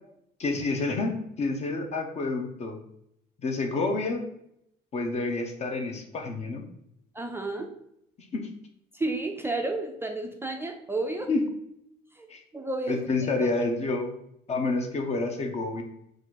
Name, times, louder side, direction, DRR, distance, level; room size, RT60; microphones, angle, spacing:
voice 1, 0.4-2.8 3.4-4.2 4.9-6.6 8.3-8.5 11.3-11.4 12.3-12.4 12.9-14.1 14.5-15.8, left 3 dB, 40° left, 4 dB, 0.8 m, -28 dB
voice 2, 7.1-7.7 8.9-11.3 12.2-12.3 12.5-13.0, right 2 dB, 15° right, 3 dB, 0.4 m, -31 dB
3.9 x 2.5 x 4.7 m, 0.75 s
cardioid pair, 110°, 17 cm